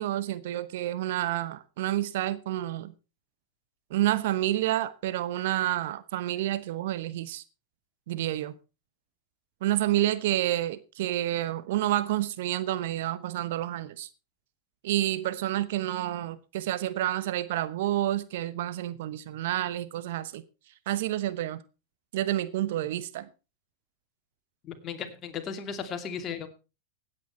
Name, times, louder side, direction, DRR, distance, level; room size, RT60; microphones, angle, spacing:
voice 1, 0.0-2.9 3.9-7.4 8.1-8.5 9.6-14.1 14.8-20.4 20.9-21.6 22.1-23.3, right 14 dB, 65° right, 1.0 m, -29 dB
voice 2, 24.6-26.5, left 7 dB, 35° left, 2.6 m, -36 dB
16.5 x 9.1 x 4.4 m
hypercardioid pair, 95°, 0 cm